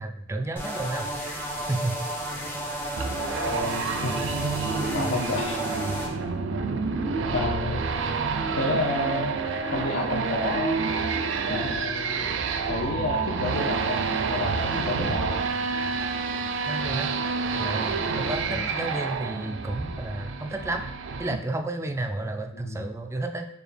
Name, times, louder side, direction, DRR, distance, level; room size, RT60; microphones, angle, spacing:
voice 1, 0.0-2.1 16.7-17.1 17.6-20.9 21.2-23.5, right 2 dB, 15° right, 5 dB, 0.3 m, -32 dB
sound 1, 0.6-6.1, right 1 dB, 10° left, 0.7 m, -33 dB
sound 2, 3.0-21.4, right 4 dB, 85° right, 0.4 m, -28 dB
voice 2, 3.3-4.2 4.9-5.6 7.3-7.8 8.6-9.3 9.7-10.9 11.5-12.3 12.7-15.4 18.5-18.6 22.5-22.9, left 2 dB, 85° left, -2 dB, 0.5 m, -30 dB
4.9 x 2.3 x 3.3 m, 0.81 s
head